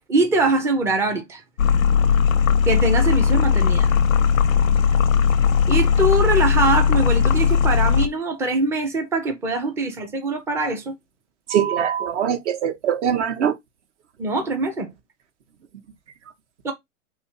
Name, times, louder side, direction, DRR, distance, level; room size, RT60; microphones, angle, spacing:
voice 1, 0.1-1.4 2.6-3.9 5.7-11.0 14.2-14.9 16.6-16.7, right 2 dB, 5° right, 0.3 m, -23 dB
sound 1, 1.6-8.1, left 7 dB, 85° left, 0.6 m, -18 dB
voice 2, 11.5-13.5, right 9 dB, 60° right, 1.0 m, -22 dB
2.8 x 2.6 x 4.2 m
hypercardioid pair, 115°, 39 cm